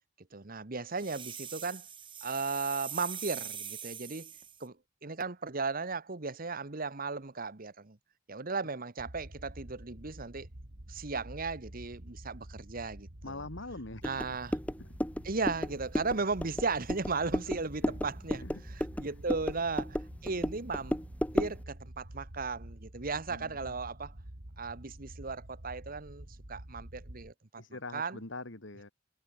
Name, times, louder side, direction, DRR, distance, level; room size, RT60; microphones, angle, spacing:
voice 1, 0.3-1.8 2.2-4.3 4.6-4.8 5.0-8.0 8.3-10.5 10.9-13.4 14.0-14.6 15.2-21.0 21.3-24.1 24.6-27.6 27.9-28.2, right 4 dB, 45° right, 1.4 m, -36 dB
sound 1, 1.0-4.6, right 8 dB, 25° right, 6.9 m, -43 dB
sound 2, 9.0-27.3, right 1 dB, 70° right, 2.8 m, -49 dB
voice 2, 13.2-14.0 17.8-18.0 18.4-18.6 23.3-23.8 27.6-28.9, left 2 dB, 65° left, 2.2 m, -43 dB
sound 3, 14.0-21.6, equal, 5° left, 2.1 m, -34 dB
head